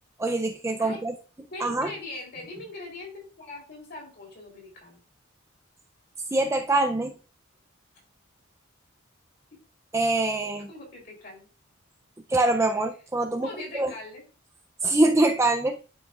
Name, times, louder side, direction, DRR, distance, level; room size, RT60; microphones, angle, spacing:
voice 1, 0.2-1.1 1.6-1.9 6.3-7.1 9.9-10.7 12.3-13.5 13.7-13.9 14.8-15.8, right 2 dB, 15° right, 5 dB, 0.4 m, -24 dB
voice 2, 0.8-1.1 1.5-5.0 10.7-11.5 13.4-14.2, left 2 dB, 50° left, -1 dB, 3.3 m, -41 dB
11.5 x 5.1 x 2.4 m, 0.35 s
head